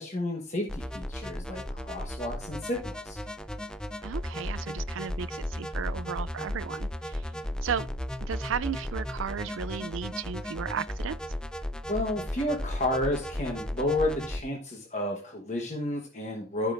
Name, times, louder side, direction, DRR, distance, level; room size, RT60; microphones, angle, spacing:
voice 1, 0.0-3.2 7.4-7.5 11.9-16.7, left 1 dB, 35° left, 1.2 m, -31 dB
sound 1, 0.7-14.4, left 1 dB, 5° left, 0.4 m, -35 dB
voice 2, 4.0-7.3 7.6-7.9 8.3-11.2, right 7 dB, 90° right, 0.4 m, -34 dB
13.5 x 6.1 x 2.5 m
head